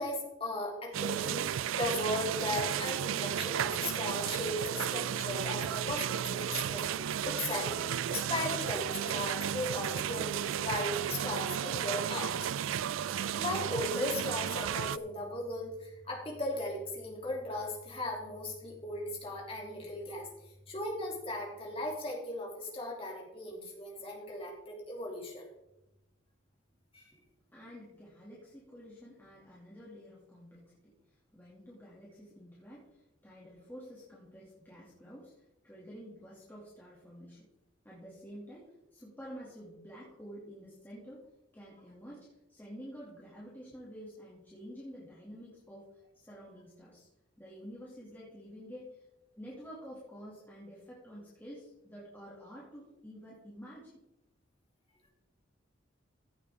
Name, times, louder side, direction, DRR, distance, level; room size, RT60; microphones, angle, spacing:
voice 1, 0.0-1.4 1.8-6.8 7.2-12.4 13.4-25.5 26.9-27.1, left 1 dB, 30° left, -1 dB, 2.9 m, -37 dB
sound 1, 0.9-15.0, right 9 dB, 90° right, 0.4 m, -33 dB
voice 2, 27.5-30.8 31.1-37.5 37.8-41.2 41.5-45.9 46.1-47.1 47.4-49.0 49.3-54.0, equal, 10° left, -7 dB, 2.4 m, -49 dB
15.5 x 8.2 x 3.6 m, 0.91 s
head